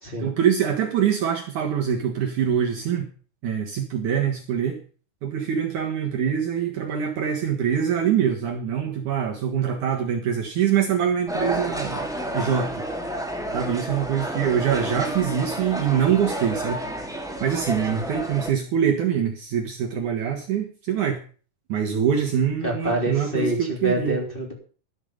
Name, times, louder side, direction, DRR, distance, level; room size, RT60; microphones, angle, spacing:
voice 1, 0.2-3.1 3.4-4.8 5.2-12.1 12.3-12.9 13.5-16.8 17.4-21.2 21.7-24.2, right 8 dB, 60° right, 1 dB, 2.6 m, -24 dB
sound 1, 11.3-18.5, equal, ahead, 1.2 m, -30 dB
voice 2, 22.6-24.5, right 1 dB, 15° left, -1 dB, 3.6 m, -26 dB
12.5 x 12.0 x 5.2 m, 0.39 s
omnidirectional pair, 4.5 m